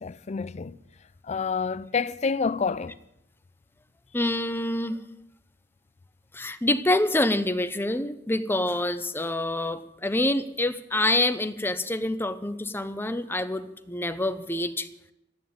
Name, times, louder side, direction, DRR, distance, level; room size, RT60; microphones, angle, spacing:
voice 1, 0.0-0.8 1.3-3.0, left 5 dB, 35° left, 0.5 m, -28 dB
voice 2, 4.1-5.0 6.3-14.9, left 1 dB, 10° left, 0.8 m, -26 dB
13.5 x 9.0 x 9.5 m
head